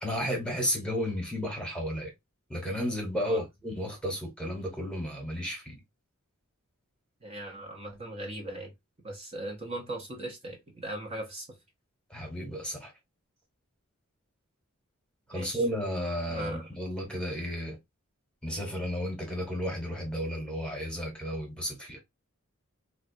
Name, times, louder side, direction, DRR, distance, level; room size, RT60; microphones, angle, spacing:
voice 1, 0.0-2.1 2.5-5.8 12.1-12.9 15.3-17.8 18.4-22.0, equal, 5° left, 1.1 m, -33 dB
voice 2, 7.2-8.7 9.0-11.6 15.3-15.6 16.3-16.6, right 1 dB, 30° right, 0.8 m, -39 dB
3.7 x 2.2 x 2.7 m
head